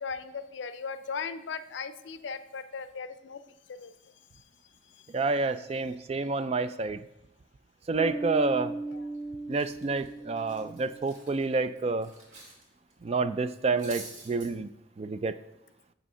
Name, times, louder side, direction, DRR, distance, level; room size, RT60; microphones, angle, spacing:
voice 1, 0.0-3.4 3.8-3.9 8.9-9.0, left 5 dB, 65° left, 12 dB, 0.5 m, -37 dB
voice 2, 5.1-7.0 7.9-8.7 9.5-12.1 13.0-14.7 15.0-15.3, right 3 dB, 30° right, 13 dB, 0.3 m, -29 dB
Bass guitar, 7.9-11.4, right 2 dB, 15° left, 2.7 m, -38 dB
Cutlery silverware, 8.9-9.2 9.5-12.6 12.9-13.1 13.5-14.5, right 2 dB, 80° right, 2.1 m, -48 dB
6.2 x 6.2 x 5.4 m, 0.88 s
head